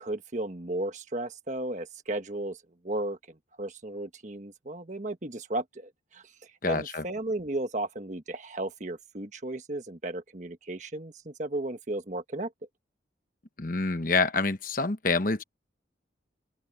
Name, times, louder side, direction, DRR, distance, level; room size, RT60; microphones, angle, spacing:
voice 1, 0.0-2.6 2.8-6.2 6.7-12.5, right 1 dB, 40° right, 1.4 m, -34 dB
voice 2, 6.6-7.1 13.6-15.4, left 3 dB, 45° left, 1.1 m, -27 dB
open air
head